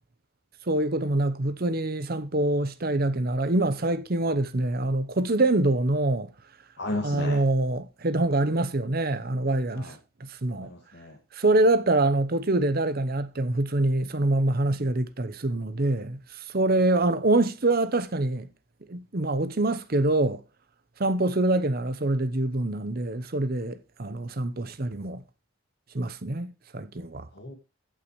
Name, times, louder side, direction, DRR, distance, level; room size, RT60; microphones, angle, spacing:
voice 1, 0.7-6.3 7.0-9.9 10.2-10.7 11.3-18.5 18.9-20.4 21.0-25.2 25.9-27.3, right 2 dB, 50° right, 0.9 m, -25 dB
voice 2, 6.8-7.4 9.7-10.0 10.6-11.2 27.3-27.5, left 2 dB, 60° left, 2.1 m, -34 dB
15.5 x 5.7 x 3.1 m
head